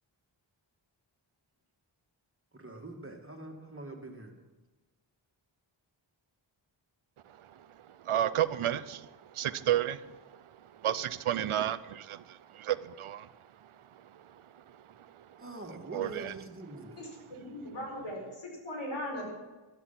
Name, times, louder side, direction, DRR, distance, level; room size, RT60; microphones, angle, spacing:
voice 1, 2.5-4.3 15.4-17.0, right 2 dB, 25° right, 2 dB, 2.2 m, -44 dB
voice 2, 8.0-10.2 10.8-13.3 15.2-15.3 15.9-16.3, right 11 dB, 90° right, 17 dB, 0.6 m, -31 dB
voice 3, 17.4-19.3, left 1 dB, 85° left, 0 dB, 4.6 m, -38 dB
12.5 x 12.0 x 5.9 m, 1.2 s
wide cardioid pair, 45°, 48 cm